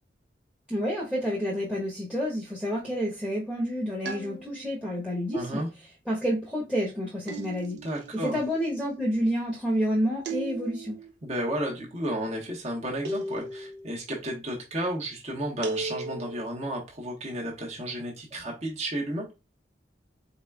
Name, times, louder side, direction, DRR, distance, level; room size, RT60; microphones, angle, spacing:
voice 1, 0.7-5.6 6.1-7.8 8.2-11.0, equal, 5° right, 1.1 m, -29 dB
sound 1, 4.1-4.9 7.3-8.1 10.2-11.1 13.1-13.9 15.6-16.5, right 2 dB, 75° right, 0.9 m, -36 dB
voice 2, 5.3-5.7 7.8-8.4 11.2-19.3, right 1 dB, 40° right, 1.2 m, -32 dB
4.3 x 4.1 x 2.3 m
head